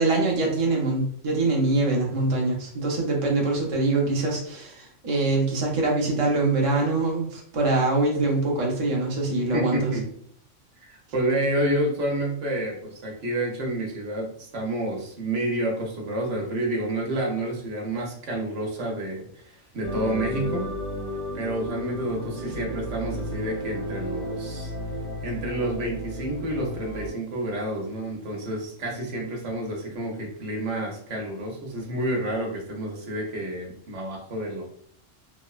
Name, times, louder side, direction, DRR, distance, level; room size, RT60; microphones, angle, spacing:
voice 1, 0.0-9.9, right 2 dB, 35° right, -2 dB, 0.5 m, -24 dB
voice 2, 9.5-10.0 10.8-20.7 21.3-24.7 25.2-34.6, right 1 dB, 70° right, 0 dB, 1.0 m, -29 dB
sound 1, 19.8-27.1, equal, 75° left, 1.6 m, -33 dB
3.2 x 2.0 x 2.3 m, 0.62 s
omnidirectional pair, 1.3 m